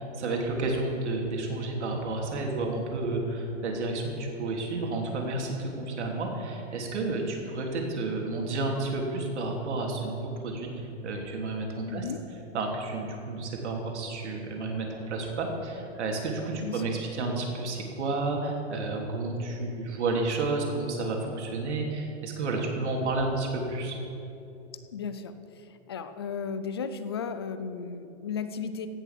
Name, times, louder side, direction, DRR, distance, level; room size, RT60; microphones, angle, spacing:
voice 1, 0.0-10.7 11.0-12.1 12.5-24.0, right 2 dB, 75° right, 1 dB, 3.3 m, -31 dB
voice 2, 11.9-12.2 16.5-16.8 24.9-25.3 25.7-28.9, left 6 dB, 25° left, 11 dB, 0.3 m, -35 dB
16.5 x 7.1 x 7.5 m, 2.8 s
hypercardioid pair, 170°, 34 cm